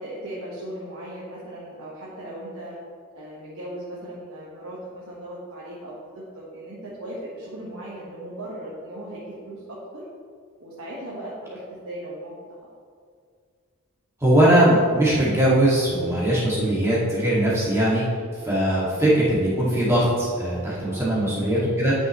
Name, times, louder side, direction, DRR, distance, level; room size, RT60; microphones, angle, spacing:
voice 1, 0.0-2.8 3.1-10.0 10.6-12.5 20.8-21.2, right 1 dB, 70° right, -7 dB, 1.5 m, -37 dB
voice 2, 14.2-18.0 18.4-21.9, right 1 dB, 10° right, -8 dB, 2.1 m, -20 dB
11.5 x 6.2 x 3.2 m, 2.1 s
head